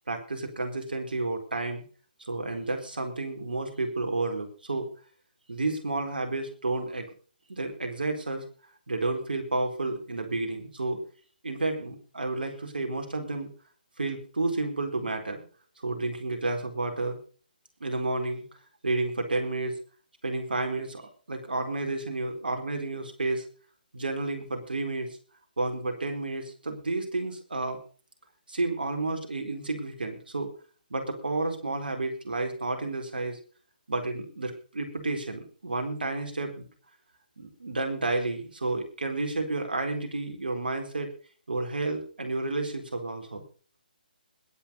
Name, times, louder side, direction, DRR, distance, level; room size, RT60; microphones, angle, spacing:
voice 1, 0.1-1.8 2.2-4.9 5.5-7.1 7.5-8.4 8.9-11.0 11.4-13.5 14.0-15.4 15.8-17.2 17.8-18.4 18.8-19.7 20.2-23.4 23.9-25.1 25.6-27.8 28.5-30.5 30.9-33.4 33.9-36.7 37.4-41.1 41.5-43.4, right 2 dB, 80° right, 5 dB, 4.3 m, -31 dB
21.0 x 7.3 x 5.4 m, 0.40 s
hypercardioid pair, 150°, 5 cm